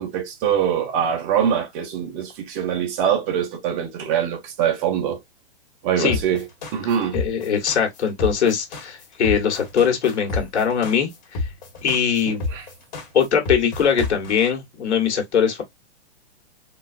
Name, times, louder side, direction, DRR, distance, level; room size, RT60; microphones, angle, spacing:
voice 1, 0.0-5.2 5.8-6.5 6.7-7.2 12.3-12.7, right 8 dB, 20° right, 0.5 m, -23 dB
sound 1, 6.1-14.5, left 3 dB, 40° left, 1.2 m, -29 dB
voice 2, 7.1-11.1 11.8-12.4 13.1-15.6, left 7 dB, 80° left, 1.5 m, -21 dB
3.8 x 2.3 x 2.4 m
hypercardioid pair, 155°, 33 cm